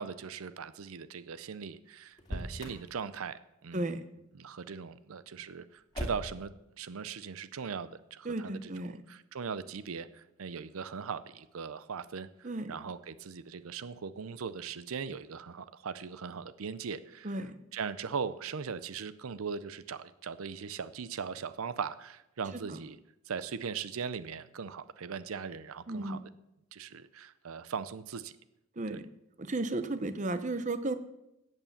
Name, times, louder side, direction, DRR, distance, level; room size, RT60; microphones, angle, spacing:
voice 1, 0.0-3.9 4.3-23.0 23.3-26.2 26.7-28.3 28.9-29.0, right 6 dB, 85° right, 15 dB, 0.6 m, -40 dB
Motor vehicle (road), 2.1-2.9 5.9-6.5, equal, 20° left, 2.4 m, -38 dB
voice 2, 8.2-9.0 12.4-12.7 17.2-17.5 25.9-26.2 28.8-29.0 29.4-31.0, right 2 dB, 35° right, 12 dB, 0.7 m, -34 dB
14.0 x 8.3 x 7.2 m, 0.89 s
head